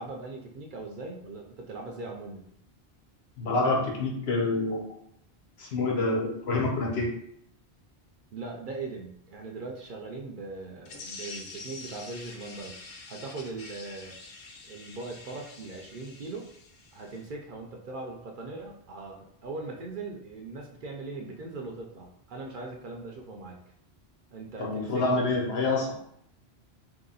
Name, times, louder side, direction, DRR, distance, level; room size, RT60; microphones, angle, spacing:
voice 1, 0.0-2.4 8.3-12.8 13.1-14.2 14.7-16.5 16.9-23.6 24.3-25.3, right 3 dB, 60° right, 1 dB, 0.7 m, -40 dB
voice 2, 3.4-4.9 5.6-7.1 24.6-25.9, left 2 dB, 75° left, -1 dB, 1.1 m, -27 dB
sound 1, 10.8-17.3, left 3 dB, 55° left, 0.6 m, -46 dB
2.9 x 2.8 x 3.9 m, 0.70 s
omnidirectional pair, 1.1 m